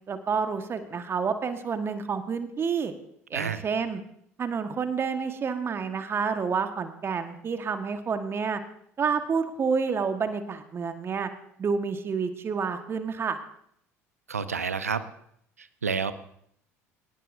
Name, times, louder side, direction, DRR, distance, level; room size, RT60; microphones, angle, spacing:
voice 1, 0.1-2.9 3.3-4.0 4.4-8.6 9.0-11.3 11.6-13.4, right 5 dB, 30° right, 8 dB, 1.5 m, -29 dB
voice 2, 3.3-3.6 14.3-15.0 15.6-16.1, right 5 dB, 80° right, 13 dB, 0.9 m, -29 dB
27.0 x 18.5 x 2.7 m, 0.69 s
figure-of-eight pair, 65°, 8 cm